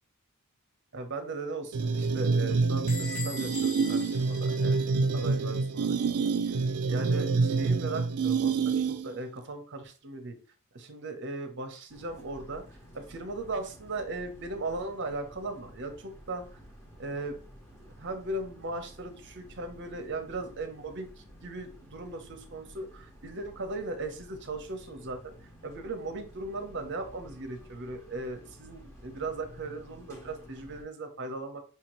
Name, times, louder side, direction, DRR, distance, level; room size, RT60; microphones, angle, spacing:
voice 1, 0.9-4.8 5.1-6.0 6.9-10.3 10.7-12.6 12.9-16.4 17.0-17.4 18.0-21.1 21.4-31.6, right 2 dB, 55° right, 6 dB, 0.8 m, -38 dB
sound 1, 1.7-9.2, right 4 dB, 90° right, 0.4 m, -27 dB
Bell / Squeak, 2.9-5.4, left 3 dB, 75° left, 1.5 m, -42 dB
sound 2, 11.9-30.8, equal, 10° left, 1.1 m, -52 dB
5.6 x 2.8 x 3.0 m, 0.36 s
head